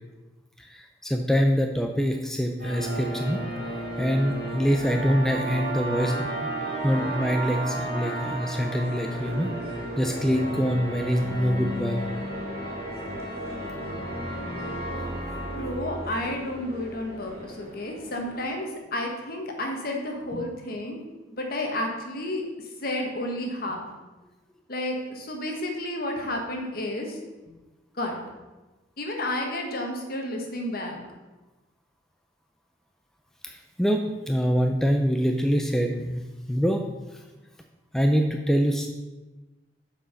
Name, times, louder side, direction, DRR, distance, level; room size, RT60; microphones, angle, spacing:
voice 1, 0.6-3.4 4.0-6.5 6.8-9.5 10.0-12.0 33.4-36.2 36.5-36.9 37.9-38.9, equal, 5° left, 3 dB, 0.4 m, -25 dB
sound 1, 2.6-18.5, right 1 dB, 55° right, 2.0 m, -33 dB
voice 2, 15.5-21.0 21.3-22.4 22.8-23.8 24.7-27.2 27.9-28.2 29.0-31.0, left 1 dB, 55° left, 2 dB, 1.3 m, -31 dB
7.3 x 4.6 x 5.1 m, 1.2 s
head